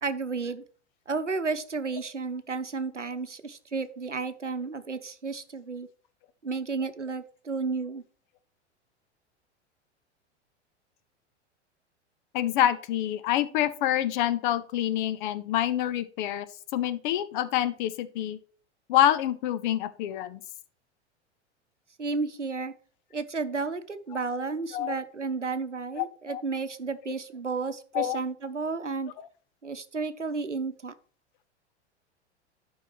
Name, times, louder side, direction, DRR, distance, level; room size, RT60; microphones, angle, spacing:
voice 1, 0.0-0.6 1.1-5.9 6.4-8.0 22.0-22.7 23.1-29.1 29.6-30.9, right 4 dB, 90° right, 11 dB, 0.8 m, -32 dB
voice 2, 12.3-16.5 16.7-18.4 18.9-20.4 24.7-25.0 26.0-26.4 27.9-28.2 29.2-29.3, left 12 dB, 45° left, 14 dB, 0.8 m, -27 dB
11.5 x 5.6 x 3.1 m, 0.41 s
figure-of-eight pair, 90°, 35 cm